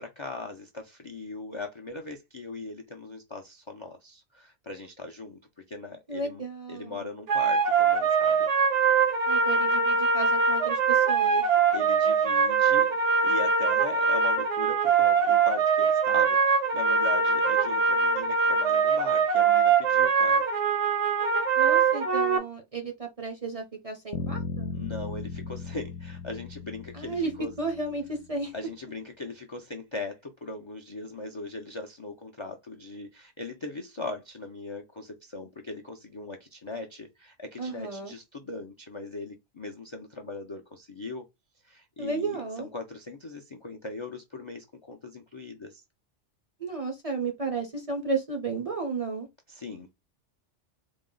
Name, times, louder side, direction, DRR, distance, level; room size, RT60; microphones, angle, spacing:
voice 1, 0.0-5.4 5.7-8.5 11.7-12.9 13.2-20.4 24.7-27.5 28.5-41.3 41.6-45.8 49.5-49.9, left 2 dB, 45° left, 0.4 m, -39 dB
voice 2, 6.1-7.1 9.3-11.4 21.5-24.7 26.9-27.3 27.6-28.5 37.6-38.1 42.0-42.7 46.6-49.3, right 3 dB, 40° right, 0.5 m, -33 dB
sound 1, 7.3-22.4, right 5 dB, 75° right, 1.0 m, -23 dB
sound 2, 24.1-28.1, left 5 dB, 75° left, 0.9 m, -37 dB
4.0 x 2.0 x 3.7 m
omnidirectional pair, 1.2 m